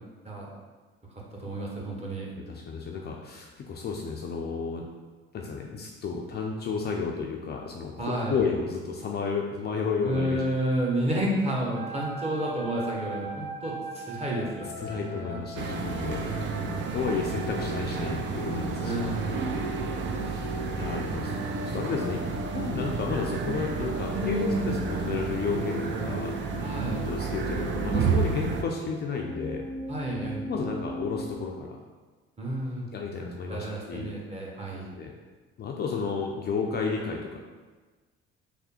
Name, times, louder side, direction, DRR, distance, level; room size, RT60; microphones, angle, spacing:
voice 1, 1.4-2.3 8.0-8.5 10.0-15.4 16.2-16.8 18.8-19.6 24.1-24.8 26.6-27.1 29.9-30.5 32.4-32.9 33.5-34.9, right 1 dB, 20° right, -3 dB, 1.0 m, -31 dB
voice 2, 2.5-4.9 5.3-10.4 10.9-11.1 14.8-16.2 16.9-18.9 20.2-22.2 22.5-26.4 27.0-29.6 30.4-31.8 32.9-34.1 34.9-35.1 35.6-37.4, left 5 dB, 35° left, 0 dB, 0.4 m, -32 dB
sound 1, 11.7-31.3, equal, 60° right, 1.4 m, -39 dB
sound 2, 15.6-28.6, right 5 dB, 40° right, 0.5 m, -31 dB
3.4 x 2.1 x 4.2 m, 1.3 s
hypercardioid pair, 55°, 29 cm